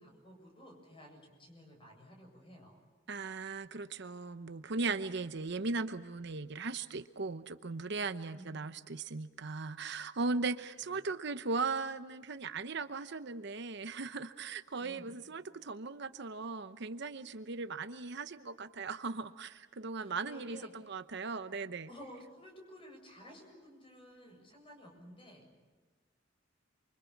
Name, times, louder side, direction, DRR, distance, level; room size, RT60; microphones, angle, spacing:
voice 1, 0.0-2.8 8.2-8.6 10.8-11.0 14.8-15.2 20.0-20.7 21.9-25.5, equal, 30° left, 3 dB, 7.5 m, -54 dB
voice 2, 3.1-21.9, right 3 dB, 60° right, 11 dB, 0.9 m, -38 dB
28.5 x 24.5 x 7.2 m, 1.3 s
head